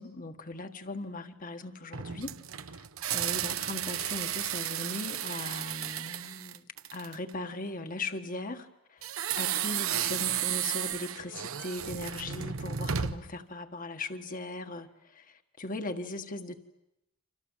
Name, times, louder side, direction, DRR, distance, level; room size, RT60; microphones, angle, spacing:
voice 1, 0.0-2.3 2.7-2.8 3.1-6.6 6.9-9.1 9.4-16.6, left 2 dB, 40° left, 1.6 m, -39 dB
sound 1, 1.9-7.3 9.0-13.4, right 9 dB, 90° right, 1.0 m, -33 dB
29.5 x 26.5 x 7.4 m
head